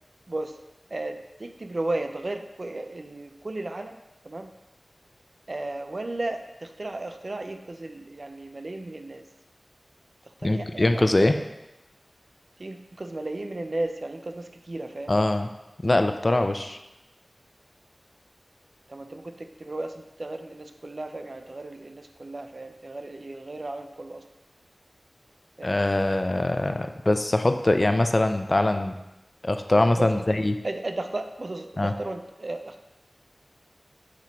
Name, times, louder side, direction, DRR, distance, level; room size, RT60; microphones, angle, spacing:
voice 1, 0.9-4.0 4.2-4.5 5.5-9.2 10.4-11.1 12.6-15.1 18.9-24.2 25.6-25.7 29.9-30.2 30.6-32.8, right 2 dB, 55° right, 6 dB, 0.5 m, -34 dB
voice 2, 10.4-11.4 15.1-15.5 15.8-16.8 25.6-28.9 29.4-30.6 31.8-31.9, left 2 dB, 35° left, 7 dB, 0.4 m, -23 dB
8.3 x 3.0 x 4.5 m, 0.94 s
wide cardioid pair, 70°, 0 cm